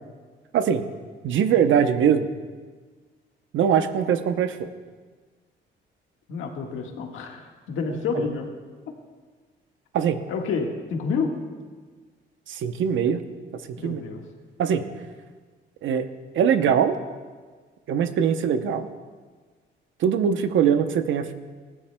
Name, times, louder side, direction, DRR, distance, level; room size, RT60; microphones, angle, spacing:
voice 1, 0.5-0.8 1.2-2.3 3.5-4.7 9.9-10.2 12.5-13.2 13.8-14.0 14.6-14.8 15.8-16.1 16.3-16.9 17.9-18.9 20.0-21.3, right 8 dB, 75° right, 9 dB, 0.8 m, -22 dB
voice 2, 6.3-8.5 10.3-11.3 13.8-14.2, left 5 dB, 80° left, 2 dB, 1.6 m, -29 dB
19.5 x 14.5 x 2.3 m, 1.5 s
cardioid pair, 90°, 20 cm